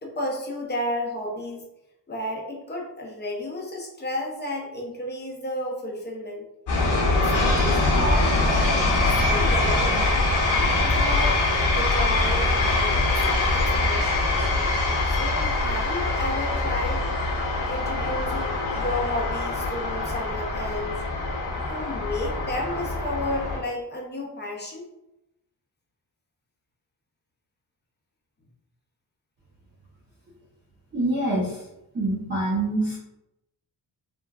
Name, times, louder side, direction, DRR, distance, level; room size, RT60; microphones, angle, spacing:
voice 1, 0.0-1.7 2.1-6.4 7.1-8.7 9.0-10.2 10.8-11.4 11.7-14.5 15.0-17.0 17.7-21.0 21.5-24.9, left 1 dB, 25° left, -1 dB, 0.6 m, -32 dB
sound 1, 6.7-23.6, left 2 dB, 70° left, 1.1 m, -23 dB
voice 2, 30.9-31.6 31.9-33.0, right 2 dB, 25° right, -7 dB, 0.7 m, -25 dB
3.4 x 2.2 x 2.3 m, 0.86 s
cardioid pair, 120°, 41 cm